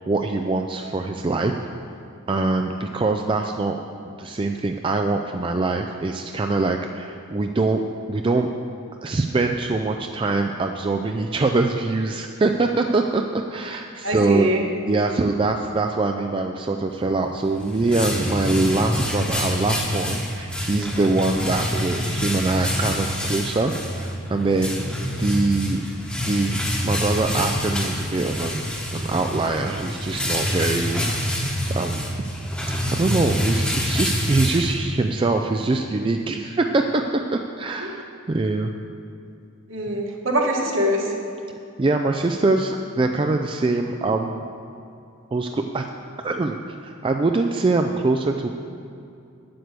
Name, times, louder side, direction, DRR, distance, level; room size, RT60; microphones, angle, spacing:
voice 1, 0.0-1.6 2.3-3.8 4.2-7.8 8.1-8.5 9.0-14.5 14.9-23.7 24.0-24.8 25.1-25.8 26.2-32.1 32.9-38.7 41.8-44.4 45.3-45.8 46.2-46.6 46.8-48.5, right 3 dB, 25° right, 4 dB, 0.3 m, -23 dB
voice 2, 14.0-14.6 37.8-37.9 39.7-41.1, equal, 65° right, -1 dB, 1.7 m, -23 dB
sound 1, 17.3-35.2, equal, 5° left, 1.1 m, -26 dB
9.5 x 7.8 x 6.7 m, 2.6 s
head